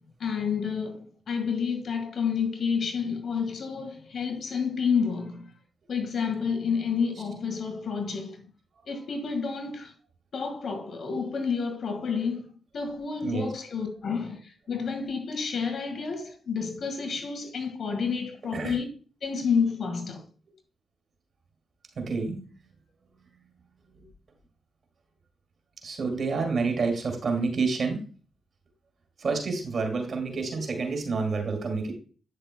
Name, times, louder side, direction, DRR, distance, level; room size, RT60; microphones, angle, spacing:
voice 1, 0.2-5.5 5.9-8.4 8.9-9.9 10.3-12.4 12.7-18.9 19.2-20.2, left 6 dB, 60° left, 1.7 m, -29 dB
voice 2, 22.0-22.4 25.8-28.0 29.2-31.9, right 4 dB, 55° right, 2.3 m, -28 dB
8.9 x 6.7 x 2.2 m
hypercardioid pair, 40°, 0 cm